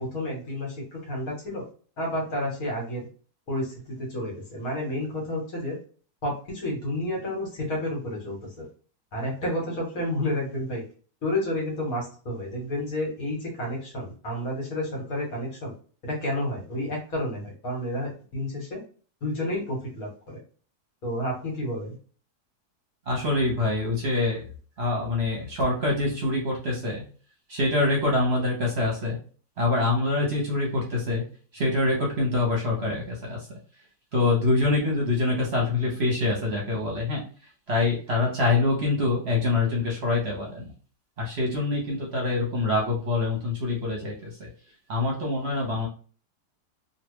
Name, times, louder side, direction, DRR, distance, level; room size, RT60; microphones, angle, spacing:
voice 1, 0.0-1.7 2.0-3.1 3.5-5.8 6.2-8.4 9.1-10.8 11.2-15.7 16.0-18.8 19.2-20.4 21.0-22.0, left 1 dB, 60° left, -1 dB, 1.6 m, -30 dB
voice 2, 23.1-24.4 24.8-27.0 27.5-29.2 29.6-31.2 31.5-33.5 34.1-37.2 37.7-40.7 41.2-44.5 44.9-45.9, left 2 dB, 50° right, -2 dB, 0.9 m, -25 dB
3.2 x 2.4 x 3.1 m, 0.41 s
omnidirectional pair, 1.7 m